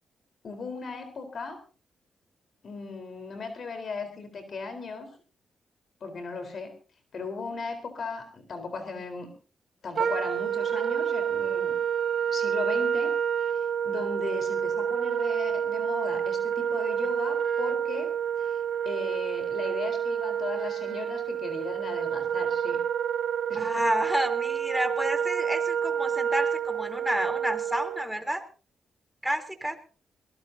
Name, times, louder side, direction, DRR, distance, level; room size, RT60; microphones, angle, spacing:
voice 1, 0.4-1.6 2.6-5.1 6.0-6.7 7.1-9.3 9.8-11.8 12.3-13.1 13.4-18.1 18.4-22.8 23.5-23.8, left 4 dB, 60° left, 7 dB, 4.1 m, -37 dB
Wind instrument woodwind instrument, 10.0-28.1, right 8 dB, 70° right, 1.6 m, -28 dB
voice 2, 23.5-28.4 29.2-29.8, right 1 dB, 5° right, 6 dB, 3.6 m, -30 dB
22.0 x 18.0 x 2.8 m, 0.37 s
cardioid pair, 60°, 0 cm